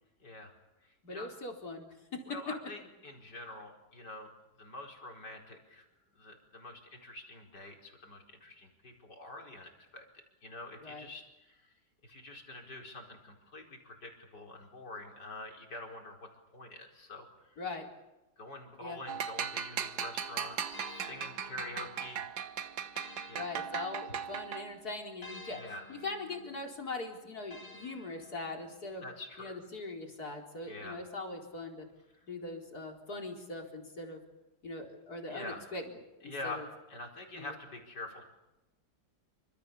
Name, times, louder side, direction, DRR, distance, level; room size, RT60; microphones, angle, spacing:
voice 1, 0.2-0.5 0.8-1.3 2.3-4.3 4.6-5.9 6.1-10.1 10.4-11.7 12.0-16.2 16.5-17.3 18.4-22.3 23.3-23.4 24.1-24.2 25.5-25.9 29.0-29.6 30.7-31.0 35.3-35.7 36.2-38.2, left 2 dB, 85° left, 2 dB, 5.5 m, -46 dB
voice 2, 1.0-2.2 10.8-11.1 17.6-17.9 18.8-19.0 23.3-25.6 25.9-29.0 29.4-31.9 32.3-34.2 34.6-35.8 36.2-36.6 37.3-37.5, left 2 dB, 65° left, 1 dB, 4.8 m, -41 dB
sound 1, 19.1-24.9, right 8 dB, 75° right, 1.7 m, -38 dB
sound 2, 20.7-24.4 25.2-28.9, left 2 dB, 35° left, 2.4 m, -53 dB
28.0 x 26.0 x 7.0 m, 0.99 s
omnidirectional pair, 1.8 m